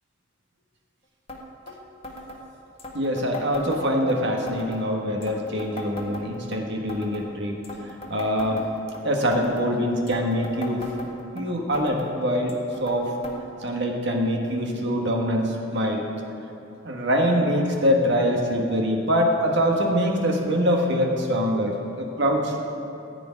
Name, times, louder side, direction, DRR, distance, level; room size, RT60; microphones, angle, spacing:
sound 1, 1.3-1.4 1.7-1.8 2.0-2.4 2.8-4.2 4.5-4.8 5.2-6.6 6.9-7.3 7.6-9.0 9.3-9.7 10.1-11.4 11.7-12.1 12.5-13.0 13.2-13.4 13.6-13.7 14.5-14.6 15.4-15.5, left 2 dB, 30° left, 1.6 m, -38 dB
voice 1, 2.9-7.6 8.1-8.6 9.0-11.0 11.3-12.6 12.8-13.2 13.6-16.1 16.8-22.6, equal, 65° right, 1 dB, 1.6 m, -24 dB
14.5 x 5.0 x 9.4 m, 2.9 s
head